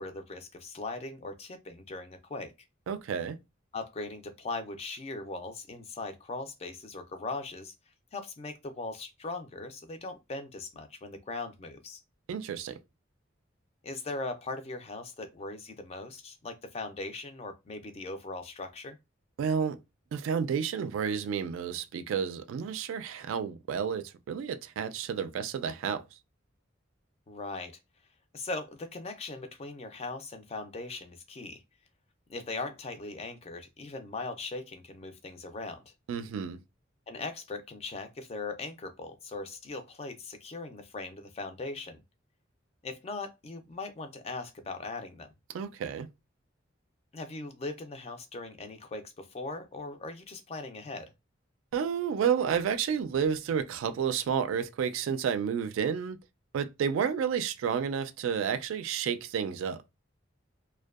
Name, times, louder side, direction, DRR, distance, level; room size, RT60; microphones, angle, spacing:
voice 1, 0.0-2.5 3.7-7.7 8.1-12.0 13.8-19.0 27.3-27.7 28.3-31.6 32.3-35.8 37.1-42.0 42.8-45.3 47.1-51.1, left 3 dB, 30° left, 0.4 m, -39 dB
voice 2, 2.9-3.4 12.3-12.8 19.4-19.8 20.1-26.0 36.1-36.6 45.5-46.1 51.7-56.2 56.5-59.8, right 7 dB, 90° right, 0.3 m, -31 dB
2.6 x 2.2 x 2.3 m
head